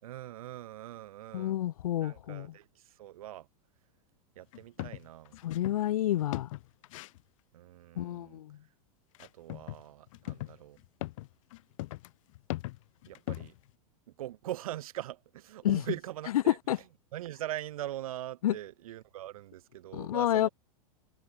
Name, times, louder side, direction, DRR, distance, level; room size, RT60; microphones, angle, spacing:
voice 1, 0.0-1.6 2.0-3.5 4.4-5.4 7.5-8.4 9.2-10.8 13.1-13.5 14.2-20.5, right 14 dB, 75° right, 3.8 m, -42 dB
voice 2, 1.3-2.5 5.4-6.5 8.0-8.6 15.6-15.8 16.7-16.8 18.4-18.5 19.9-20.5, left 13 dB, 80° left, 1.9 m, -29 dB
sound 1, 4.5-5.8 6.1-7.2 9.1-9.8 10.1-13.7, left 19 dB, 65° left, 0.9 m, -39 dB
supercardioid pair, 135°, 18 cm